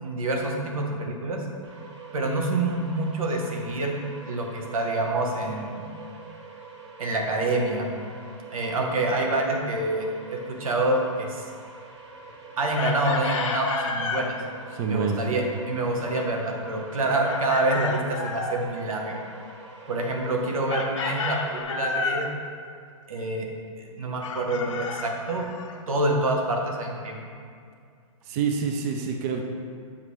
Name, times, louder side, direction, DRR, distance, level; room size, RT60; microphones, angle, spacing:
voice 1, 0.0-1.4 2.1-4.0 4.3-5.8 7.0-7.9 8.5-11.4 12.6-14.4 14.8-19.2 19.9-22.3 23.1-23.5 23.8-25.5 25.9-27.2, right 2 dB, 85° right, 1 dB, 1.1 m, -27 dB
sound 1, 1.6-21.6, right 4 dB, 55° right, 1.0 m, -45 dB
Chicken rooster, 12.8-14.3 17.2-18.6 20.7-22.3 24.2-25.8, left 4 dB, 65° left, 0.7 m, -31 dB
voice 2, 14.7-15.4 28.3-29.4, right 6 dB, 30° right, 3 dB, 0.4 m, -27 dB
7.6 x 4.2 x 3.2 m, 2.3 s
hypercardioid pair, 150°, 18 cm